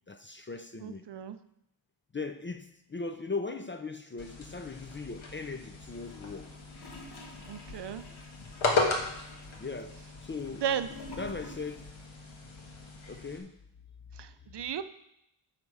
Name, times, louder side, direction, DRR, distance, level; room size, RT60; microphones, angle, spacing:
voice 1, 0.1-1.1 2.1-6.6 9.6-10.6 11.2-11.9 13.1-13.6, left 4 dB, 25° left, 0.4 m, -39 dB
voice 2, 0.8-1.4 7.5-8.1 10.6-10.9 14.1-14.8, right 8 dB, 60° right, 0.6 m, -34 dB
sound 1, 4.2-13.4, left 3 dB, 70° left, 1.5 m, -36 dB
Gurgling / Toilet flush, 5.9-12.0 12.2-12.3, left 2 dB, 50° left, 1.4 m, -50 dB
7.9 x 5.9 x 5.4 m
wide cardioid pair, 130°, 49 cm